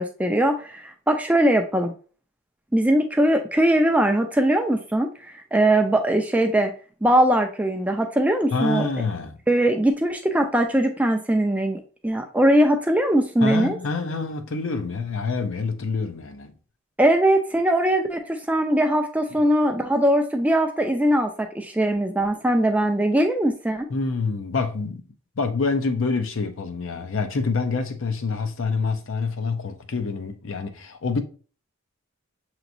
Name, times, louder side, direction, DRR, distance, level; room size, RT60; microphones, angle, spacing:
voice 1, 0.0-1.9 2.7-6.7 7.0-8.9 9.5-13.8 17.0-23.9, right 1 dB, 5° right, 0.4 m, -21 dB
voice 2, 8.5-9.4 13.4-16.5 19.3-19.4 23.9-25.0 25.4-31.2, left 4 dB, 65° left, 0.6 m, -26 dB
6.8 x 2.9 x 2.6 m
head